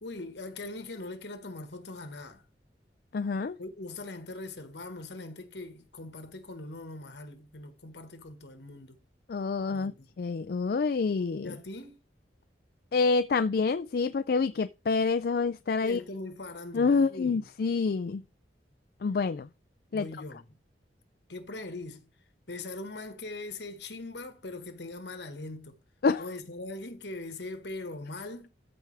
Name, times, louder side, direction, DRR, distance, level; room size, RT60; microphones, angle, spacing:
voice 1, 0.0-2.4 3.6-9.0 9.7-10.1 11.4-12.0 15.8-17.5 19.9-20.6 21.3-22.1 22.5-25.8 26.2-28.5, left 2 dB, 70° left, 1.5 m, -41 dB
voice 2, 3.1-3.6 9.3-9.9 10.2-11.6 12.9-16.0 16.7-18.2 19.0-19.5 19.9-20.1 26.0-26.2, left 4 dB, 55° left, 0.4 m, -27 dB
14.0 x 4.8 x 3.4 m
head